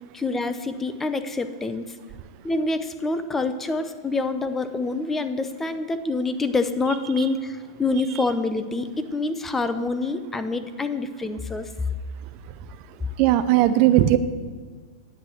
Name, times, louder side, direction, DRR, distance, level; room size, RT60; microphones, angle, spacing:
voice 1, 0.1-1.8 2.4-11.7, left 3 dB, 10° left, 10 dB, 0.7 m, -26 dB
voice 2, 13.2-14.2, right 13 dB, 40° right, 12 dB, 0.6 m, -18 dB
9.9 x 8.0 x 7.8 m, 1.5 s
hypercardioid pair, 145°, 2 cm